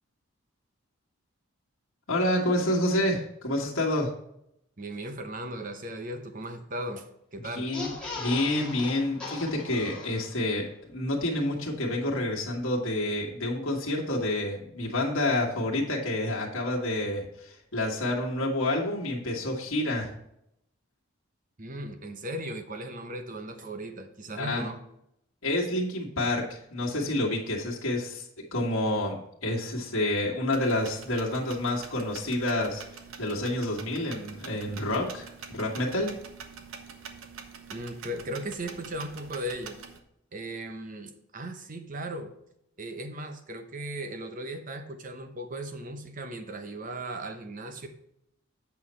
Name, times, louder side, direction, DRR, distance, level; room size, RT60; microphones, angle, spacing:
voice 1, 2.1-4.1 7.5-20.1 24.3-24.6 25.4-36.1, left 1 dB, 75° left, -2 dB, 1.7 m, -29 dB
voice 2, 4.8-7.0 7.3-7.7 9.7-9.8 21.6-24.8 37.7-39.8 40.3-42.3 42.8-47.9, right 1 dB, 40° right, 7 dB, 0.8 m, -37 dB
sound 1, 7.7-10.6 11.0-11.1 11.3-11.4, left 3 dB, 5° left, 1.8 m, -39 dB
sound 2, 30.5-40.0, right 5 dB, 75° right, 1.0 m, -45 dB
8.2 x 5.7 x 4.3 m, 0.77 s
head